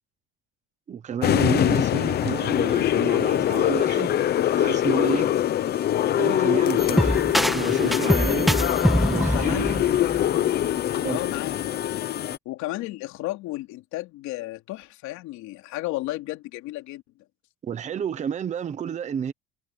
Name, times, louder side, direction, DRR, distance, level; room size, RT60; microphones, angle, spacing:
voice 1, 0.9-4.2 4.6-5.3 6.2-7.3 7.5-8.6 9.1-9.9 11.0-11.2 17.6-19.3, right 7 dB, 20° right, 1.0 m, -30 dB
sound 1, 1.2-12.4, left 11 dB, 30° left, 0.7 m, -23 dB
sound 2, 6.8-10.7, equal, ahead, 1.5 m, -24 dB
voice 2, 7.8-8.2 8.6-8.7 9.1-10.1 11.0-11.7 12.4-17.0, left 17 dB, 60° left, 3.3 m, -33 dB
cardioid pair, 175°, 32 cm